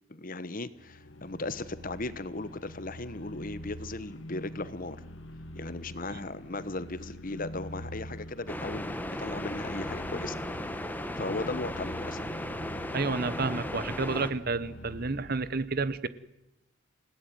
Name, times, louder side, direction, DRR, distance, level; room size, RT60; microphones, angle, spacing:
voice 1, 0.1-5.0 5.5-10.4 11.2-12.2, left 2 dB, 40° left, 15 dB, 1.1 m, -37 dB
sound 1, 0.7-15.5, equal, 60° left, 2.1 m, -45 dB
sound 2, 8.5-14.3, left 1 dB, 10° left, 1.4 m, -36 dB
voice 2, 12.9-16.1, right 3 dB, 45° right, 15 dB, 1.0 m, -30 dB
29.0 x 17.5 x 9.4 m, 0.94 s
head